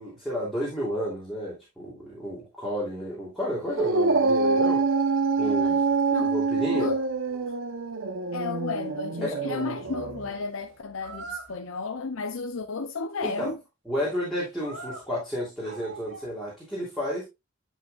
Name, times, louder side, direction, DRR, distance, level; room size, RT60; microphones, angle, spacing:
voice 1, 0.0-4.8 5.4-5.8 6.2-6.9 9.2-9.7 13.2-13.5 13.9-17.2, equal, ahead, 3.1 m, -31 dB
Dog, 3.7-10.3, right 4 dB, 80° right, 0.9 m, -25 dB
sound 1, 4.9-5.0 5.3-6.2 6.6-7.5 11.0-11.6 14.6-15.1 15.6-16.4, right 4 dB, 60° right, 3.7 m, -42 dB
voice 2, 5.4-6.3 6.7-7.0 8.3-13.6, left 4 dB, 85° left, 0.7 m, -33 dB
11.0 x 5.0 x 2.4 m
head